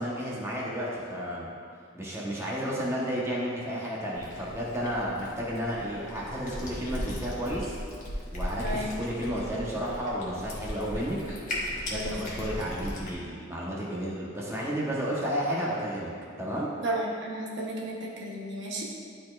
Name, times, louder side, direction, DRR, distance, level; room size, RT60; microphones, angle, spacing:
voice 1, 0.0-1.5 2.0-7.8 8.3-11.2 11.8-16.1 16.4-16.7, equal, 15° right, -6 dB, 1.0 m, -32 dB
Cat, 4.2-13.1, left 1 dB, 40° left, 1.2 m, -37 dB
voice 2, 8.6-8.9 11.9-12.4 16.8-18.8, right 1 dB, 60° right, -3 dB, 0.9 m, -33 dB
11.0 x 4.3 x 2.4 m, 2.3 s
head